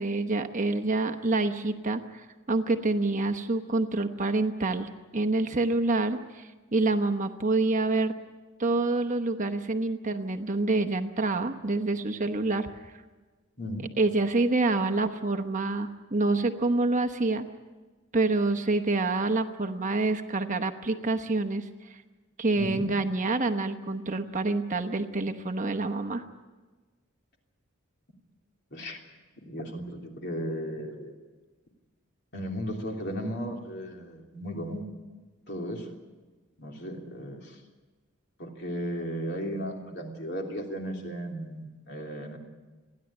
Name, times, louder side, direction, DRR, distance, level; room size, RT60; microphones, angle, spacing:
voice 1, 0.0-8.1 8.6-12.7 14.0-17.4 18.1-21.7 22.4-26.2, right 2 dB, 35° right, 7 dB, 1.0 m, -27 dB
voice 2, 13.6-13.9 22.6-22.9 28.7-29.0 29.4-31.1 32.3-34.8 35.5-35.9 36.6-37.6 38.4-42.4, equal, 50° left, 1 dB, 3.1 m, -35 dB
29.5 x 11.0 x 10.0 m, 1.3 s
head